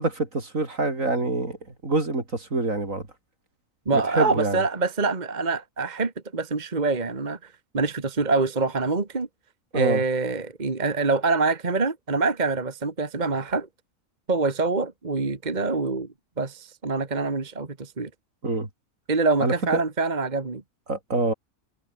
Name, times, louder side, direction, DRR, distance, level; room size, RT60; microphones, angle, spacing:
voice 1, 0.0-1.6 1.8-3.1 3.9-4.6 9.7-10.0 18.4-18.7 19.4-19.8 20.9-21.3, right 2 dB, 70° right, 5.0 m, -26 dB
voice 2, 3.9-7.4 7.7-9.3 9.7-13.7 14.3-16.1 16.4-18.1 19.1-20.6, right 3 dB, 30° right, 1.8 m, -25 dB
omnidirectional pair, 1.4 m